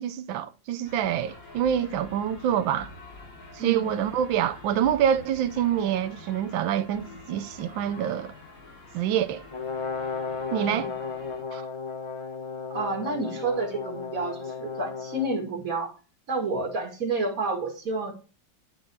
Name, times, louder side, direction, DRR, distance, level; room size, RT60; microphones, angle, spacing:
voice 1, 0.0-2.9 3.5-8.3 8.9-9.4 10.5-10.9 11.5-11.6, right 9 dB, 85° right, 1.4 m, -26 dB
sound 1, 0.8-11.4, left 2 dB, 75° left, 4.4 m, -46 dB
voice 2, 3.6-3.9 10.6-10.9 12.7-15.9 16.3-18.1, right 3 dB, 45° right, 2.5 m, -30 dB
Brass instrument, 9.5-15.3, left 5 dB, 45° left, 0.3 m, -34 dB
11.5 x 4.4 x 4.6 m
omnidirectional pair, 2.1 m